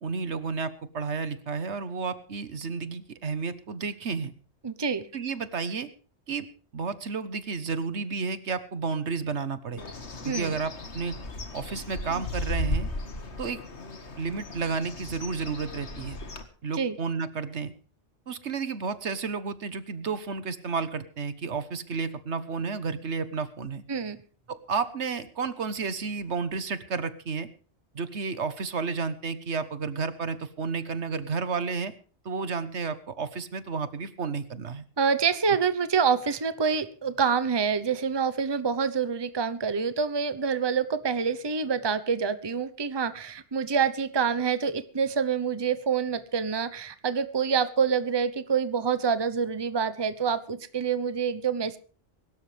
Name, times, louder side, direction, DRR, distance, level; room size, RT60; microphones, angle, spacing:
voice 1, 0.0-4.3 5.1-5.9 6.3-6.5 6.7-9.8 10.2-11.2 11.5-12.9 13.4-13.6 14.2-16.2 16.6-17.7 18.3-23.8 24.5-27.5 27.9-31.9 32.2-34.8, right 5 dB, 75° right, 13 dB, 1.5 m, -31 dB
voice 2, 4.6-5.1 10.2-10.5 16.7-17.0 23.9-24.2 35.0-51.8, right 6 dB, 25° right, 13 dB, 0.9 m, -27 dB
Bird, 9.8-16.4, left 1 dB, 70° left, 2.1 m, -36 dB
22.5 x 12.5 x 3.4 m, 0.38 s
omnidirectional pair, 1.2 m